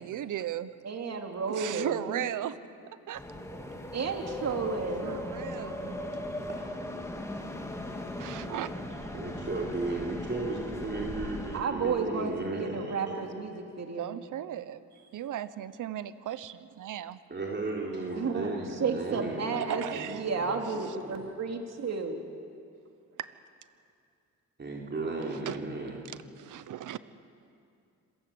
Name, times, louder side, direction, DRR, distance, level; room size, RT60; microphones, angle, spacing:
voice 1, 0.0-0.7 1.5-3.2 5.0-6.2 8.2-9.1 14.0-14.8 15.1-17.2 19.6-20.2 20.8-21.0 23.2-23.3 25.3-25.6 26.1-27.0, right 11 dB, 80° right, 15 dB, 1.0 m, -37 dB
voice 2, 0.8-2.2 3.9-5.2 11.5-14.2 18.2-18.5 18.8-19.8 20.1-22.2, right 5 dB, 55° right, 3 dB, 2.7 m, -32 dB
sound 1, 3.1-11.6, left 1 dB, 10° left, 2.5 m, -38 dB
voice 3, 9.1-13.4 17.3-21.3 24.6-26.0, right 2 dB, 35° right, -2 dB, 3.6 m, -35 dB
26.5 x 17.0 x 8.7 m, 2.4 s
cardioid pair, 90°, 31 cm